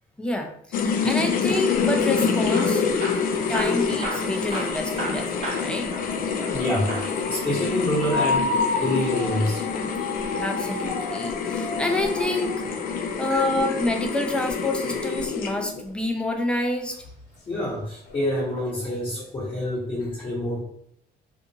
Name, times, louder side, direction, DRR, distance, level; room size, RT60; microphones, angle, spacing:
voice 1, 0.2-2.8 3.3-5.9 10.4-12.5 13.2-17.0, left 1 dB, 5° left, 3 dB, 0.5 m, -28 dB
sound 1, 0.7-15.8, left 5 dB, 60° left, 0.5 m, -27 dB
Hammer / Drill, 2.5-6.6 6.9-7.2 8.0-9.4 11.2-12.4 14.1-14.6 15.3-16.1 16.8-17.1 17.4-17.5 18.1-18.2, right 1 dB, 45° right, 1.1 m, -36 dB
sound 2, 5.9-14.0 14.9-15.0 17.5-17.7 18.1-19.3, left 3 dB, 85° left, 0.9 m, -31 dB
voice 2, 6.5-9.6 13.3-13.8 15.1-15.2 17.5-20.6, left 1 dB, 30° left, -7 dB, 1.1 m, -28 dB
2.5 x 2.5 x 2.8 m, 0.70 s
cardioid pair, 110°, 17 cm